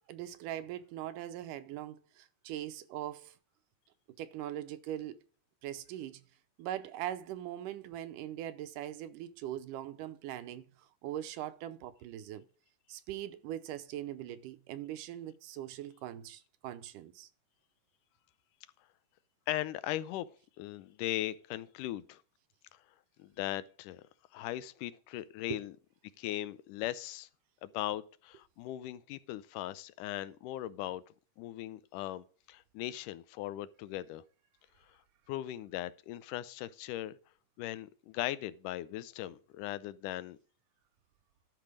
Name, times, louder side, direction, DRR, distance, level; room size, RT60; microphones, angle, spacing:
voice 1, 0.1-3.3 4.2-5.2 5.6-6.2 6.6-12.5 12.9-17.3 25.5-25.6, right 12 dB, 85° right, 2.3 m, -41 dB
voice 2, 19.5-22.2 23.2-24.0 24.3-25.7 26.2-27.3 27.6-31.0 31.4-34.2 35.3-37.1 37.6-40.4, left 14 dB, 80° left, 2.1 m, -39 dB
12.5 x 5.9 x 4.9 m
omnidirectional pair, 3.8 m